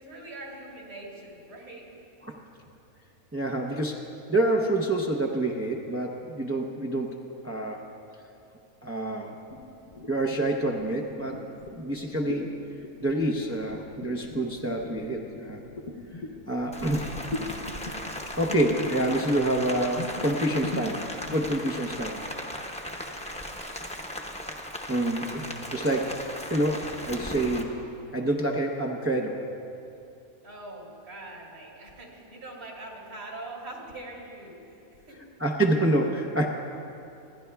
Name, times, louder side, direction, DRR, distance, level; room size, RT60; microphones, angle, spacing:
voice 1, 0.0-2.1 22.9-23.6 30.4-35.2, right 2 dB, 70° right, -4 dB, 3.3 m, -43 dB
voice 2, 3.3-7.2 7.4-7.8 8.8-9.3 10.1-11.4 11.7-12.5 13.0-15.6 16.5-17.2 18.4-21.0 21.3-22.2 24.9-26.2 26.5-27.7 28.1-29.4 35.4-36.4, right 1 dB, 25° right, -1 dB, 0.3 m, -27 dB
sound 1, 9.5-21.8, left 3 dB, 65° left, 1.4 m, -40 dB
Rain, 16.7-27.6, left 1 dB, 5° left, 0.7 m, -37 dB
27.5 x 11.0 x 2.3 m, 2.7 s
omnidirectional pair, 1.5 m